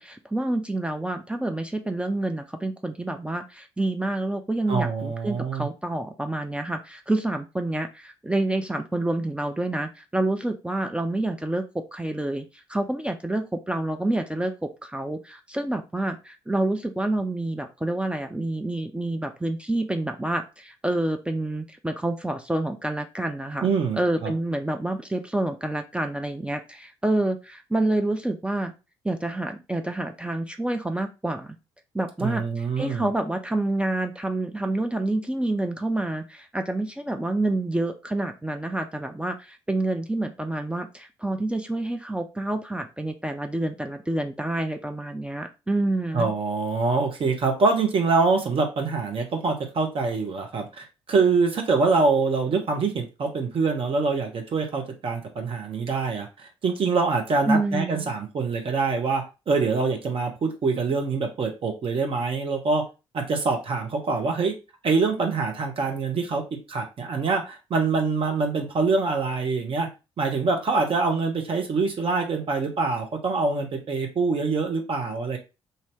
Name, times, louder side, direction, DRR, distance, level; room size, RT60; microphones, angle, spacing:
voice 1, 0.0-23.7 24.0-28.7 29.0-31.6 31.9-46.3 57.5-58.1, right 2 dB, 10° right, 5 dB, 0.4 m, -28 dB
voice 2, 4.7-5.7 23.6-24.3 32.2-33.1 46.1-62.8 63.1-64.5 64.8-69.9 70.2-75.4, right 4 dB, 40° right, 3 dB, 0.9 m, -25 dB
2.7 x 2.7 x 3.2 m, 0.29 s
figure-of-eight pair, 45°, 14 cm